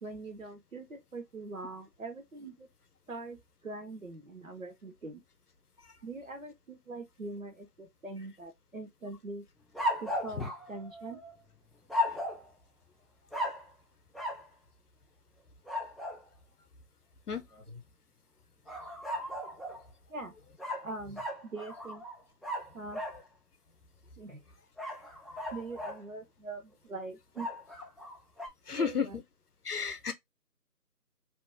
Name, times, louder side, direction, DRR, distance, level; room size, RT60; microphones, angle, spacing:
voice 1, 0.0-2.7 3.1-5.2 6.0-9.4 10.0-11.2 17.5-17.8 20.1-20.3 20.8-22.0 22.7-23.0 24.2-24.4 25.5-27.5 28.7-29.2, right 3 dB, 55° right, 0.8 m, -43 dB
sound 1, 9.7-11.3 11.9-12.5 13.3-13.7 14.1-14.5 15.7-16.2 18.7-19.9 20.6-23.2 24.8-26.0 27.4-28.5, left 1 dB, ahead, 0.4 m, -36 dB
voice 2, 28.7-29.1 29.7-30.1, left 6 dB, 65° left, 0.7 m, -31 dB
2.9 x 2.1 x 3.3 m
figure-of-eight pair, 175°, 49 cm